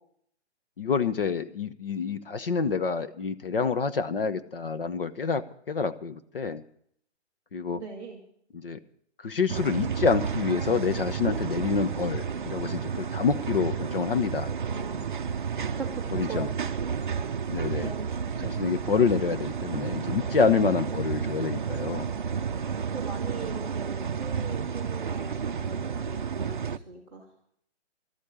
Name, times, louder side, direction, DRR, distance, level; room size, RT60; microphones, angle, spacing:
voice 1, 0.8-6.6 7.5-7.8 8.5-8.8 9.2-14.5 16.1-16.5 17.5-17.9 18.4-22.1, left 5 dB, 50° left, 11 dB, 0.9 m, -27 dB
voice 2, 7.7-8.2 14.6-15.5 15.8-16.4 17.7-18.1 20.3-21.0 22.9-27.3, right 4 dB, 5° left, -3 dB, 0.8 m, -40 dB
sound 1, 9.5-26.8, right 6 dB, 45° right, 0.5 m, -31 dB
13.0 x 8.4 x 9.9 m, 0.67 s
hypercardioid pair, 180°, 35 cm